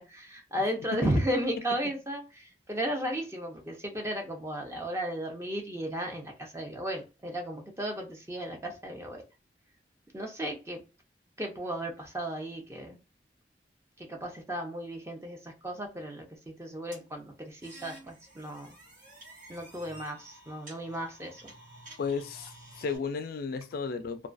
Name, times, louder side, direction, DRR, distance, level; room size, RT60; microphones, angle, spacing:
voice 1, 0.0-9.2 10.1-10.8 11.4-13.0 14.0-18.8 19.5-21.5, right 1 dB, 15° right, 0.5 m, -34 dB
sound 1, 16.9-23.0, right 1 dB, 50° right, 1.1 m, -51 dB
voice 2, 22.0-24.3, left 5 dB, 55° left, 0.3 m, -34 dB
2.2 x 2.2 x 2.5 m
head